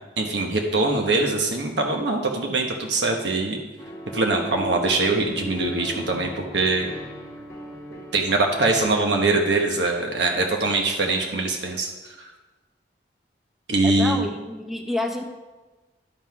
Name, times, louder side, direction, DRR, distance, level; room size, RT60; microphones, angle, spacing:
voice 1, 0.2-3.6 4.1-6.9 8.1-12.1 13.7-14.2, right 2 dB, 85° right, 2 dB, 1.2 m, -23 dB
sound 1, 3.8-8.8, right 1 dB, 15° left, 1.3 m, -37 dB
voice 2, 13.8-15.2, left 2 dB, ahead, 3 dB, 0.8 m, -28 dB
11.5 x 5.8 x 4.7 m, 1.2 s
head